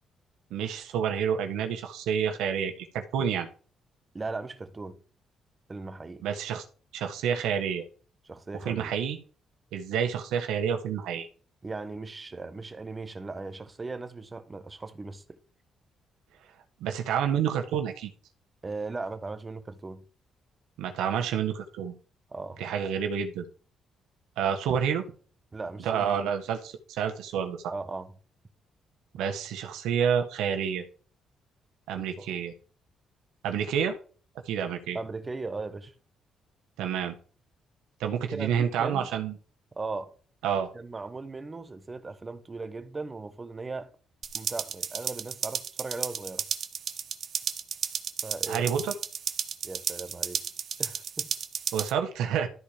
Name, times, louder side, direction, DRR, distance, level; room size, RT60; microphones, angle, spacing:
voice 1, 0.5-3.5 6.2-6.6 6.9-7.8 8.6-9.2 9.7-11.3 16.8-18.1 20.8-21.9 22.6-23.5 24.4-25.0 25.8-27.7 29.2-30.8 31.9-32.5 33.4-34.0 34.4-35.0 36.8-37.2 38.0-39.4 40.4-40.7 48.5-48.9 51.7-52.5, right 8 dB, 90° right, 1.4 m, -29 dB
voice 2, 4.1-5.0 5.7-6.2 8.2-8.9 11.6-15.4 18.6-20.0 22.3-22.6 25.5-26.3 27.7-28.1 32.0-32.3 34.9-35.9 38.1-39.1 39.7-40.1 40.7-43.9 44.3-46.4 48.2-48.7 49.6-50.4 50.8-51.3, right 3 dB, 25° right, 1.3 m, -38 dB
sound 1, 44.2-51.9, right 7 dB, 55° right, 1.0 m, -33 dB
12.5 x 4.4 x 5.1 m
cardioid pair, 90°, 0 cm